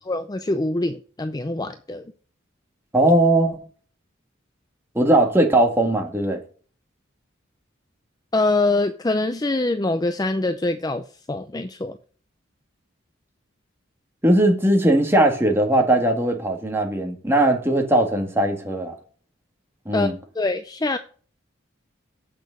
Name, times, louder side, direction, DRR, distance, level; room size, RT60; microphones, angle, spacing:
voice 1, 0.1-2.0 8.3-12.0 19.9-20.1 20.3-21.0, left 2 dB, 20° left, 0.5 m, -24 dB
voice 2, 2.9-3.6 5.0-6.4 14.2-18.9 19.9-20.1, right 1 dB, 10° right, 1.8 m, -19 dB
8.4 x 6.1 x 6.5 m
head